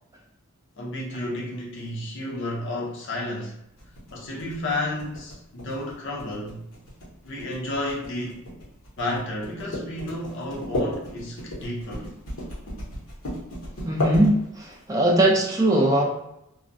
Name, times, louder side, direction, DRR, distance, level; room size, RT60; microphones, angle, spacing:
voice 1, 0.8-3.5 4.1-6.6 7.2-8.4 9.0-12.1, left 1 dB, 55° left, -3 dB, 0.6 m, -31 dB
sound 1, 3.8-14.8, left 1 dB, 85° left, 1.0 m, -33 dB
voice 2, 13.8-16.0, right 1 dB, 15° right, -1 dB, 0.4 m, -20 dB
2.3 x 2.0 x 2.5 m, 0.85 s
head